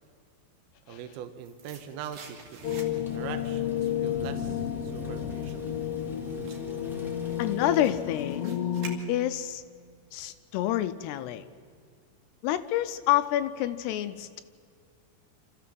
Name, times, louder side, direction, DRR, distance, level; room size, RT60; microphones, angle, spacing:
voice 1, 0.9-5.7, right 9 dB, 75° right, 8 dB, 2.8 m, -42 dB
sound 1, 1.1-3.3 3.6-9.5 9.8-9.9, right 5 dB, 55° right, 3.2 m, -49 dB
sound 2, 2.6-9.0, left 10 dB, 60° left, 2.3 m, -31 dB
Thunder / Rain, 2.8-8.5, equal, ahead, 1.5 m, -44 dB
voice 2, 7.4-8.6 9.1-9.6 10.1-11.4 12.4-14.4, left 13 dB, 80° left, 12 dB, 2.6 m, -28 dB
26.5 x 14.5 x 7.6 m, 2.2 s
omnidirectional pair, 5.0 m